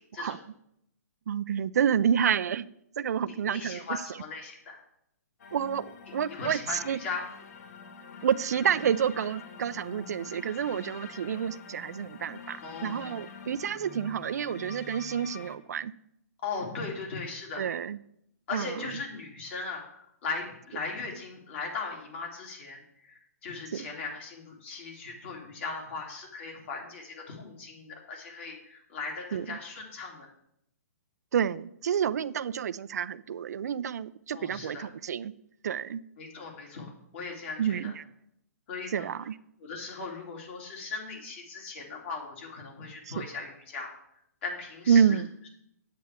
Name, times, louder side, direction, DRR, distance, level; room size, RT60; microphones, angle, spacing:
voice 1, 1.3-2.7 3.0-3.9 5.5-7.0 8.2-15.9 17.6-18.0 18.5-19.0 23.7-23.9 29.3-29.6 31.3-35.3 35.6-36.0 37.6-38.0 38.9-39.4 43.1-43.3 44.9-45.3, right 8 dB, 75° right, 15 dB, 0.4 m, -29 dB
voice 2, 3.2-4.8 6.3-7.2 12.6-13.2 16.4-17.6 18.5-30.3 34.3-34.8 36.2-37.9 38.7-39.1 39.6-43.9 44.4-45.2, left 4 dB, 45° left, -1 dB, 2.9 m, -38 dB
sound 1, 5.4-15.6, left 6 dB, 70° left, 1.3 m, -46 dB
8.8 x 8.4 x 3.5 m, 0.75 s
hypercardioid pair, 155°, 9 cm